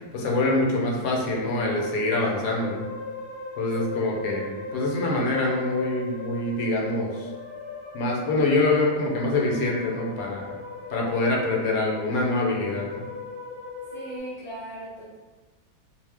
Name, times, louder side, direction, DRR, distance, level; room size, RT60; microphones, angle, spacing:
voice 1, 0.1-2.8 3.6-7.3 7.9-10.5 10.9-13.1, left 2 dB, 75° left, -1 dB, 1.0 m, -25 dB
sound 1, 0.5-14.2, left 4 dB, 55° left, 0.8 m, -37 dB
voice 2, 13.9-15.2, right 2 dB, 35° right, -11 dB, 0.6 m, -38 dB
2.5 x 2.0 x 3.3 m, 1.3 s
omnidirectional pair, 1.6 m